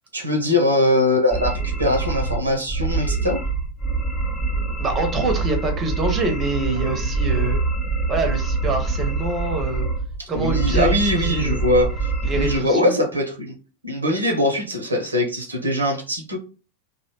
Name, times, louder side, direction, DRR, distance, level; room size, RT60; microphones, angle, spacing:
voice 1, 0.1-3.4 10.2-13.5 13.8-16.4, left 1 dB, 80° right, 2 dB, 0.6 m, -22 dB
sound 1, 1.3-12.6, right 3 dB, 10° left, 0.6 m, -25 dB
voice 2, 4.8-7.6 8.1-9.9 10.3-11.6 12.2-13.0, right 2 dB, 25° right, 5 dB, 0.6 m, -25 dB
2.6 x 2.1 x 2.8 m, 0.35 s
figure-of-eight pair, 90°, 0 cm